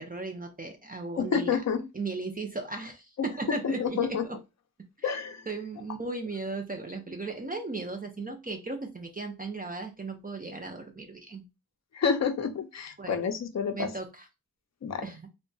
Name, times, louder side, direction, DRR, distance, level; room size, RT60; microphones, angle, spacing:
voice 1, 0.0-1.6 1.9-4.4 5.0-5.1 5.5-11.4 13.0-13.1 13.7-14.3 15.0-15.3, right 3 dB, 25° right, 0.4 m, -36 dB
voice 2, 1.2-1.9 3.2-4.2 5.0-5.4 11.9-13.9 14.8-15.1, left 6 dB, 50° left, 0.5 m, -29 dB
2.7 x 2.2 x 2.6 m
wide cardioid pair, 80°, 35 cm